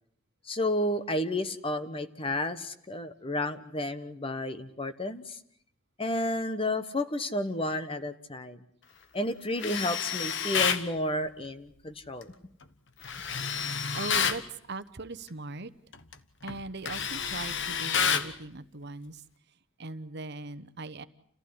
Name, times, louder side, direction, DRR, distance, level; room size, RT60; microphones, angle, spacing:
voice 1, 0.4-5.4 6.0-8.6 9.1-12.3, left 1 dB, 25° left, 11 dB, 1.3 m, -31 dB
Tools, 9.6-10.9 13.0-14.4 15.9-16.1 16.5-18.3, left 7 dB, 60° left, 1.3 m, -29 dB
voice 2, 13.6-14.4 14.7-15.7 16.4-19.2 19.8-21.0, right 2 dB, 55° right, 13 dB, 1.0 m, -40 dB
29.5 x 15.5 x 9.7 m, 0.68 s
head